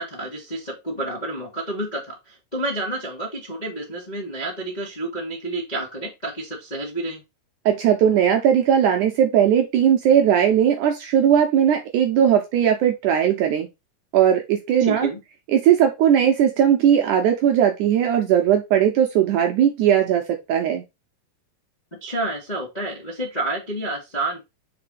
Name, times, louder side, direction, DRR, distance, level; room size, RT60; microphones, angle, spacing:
voice 1, 0.0-7.2 14.8-15.2 22.0-24.4, right 1 dB, 35° left, -4 dB, 0.7 m, -29 dB
voice 2, 7.7-13.7 14.1-15.1 15.5-20.8, right 9 dB, 80° right, 4 dB, 1.8 m, -18 dB
4.9 x 4.3 x 4.8 m, 0.23 s
omnidirectional pair, 4.2 m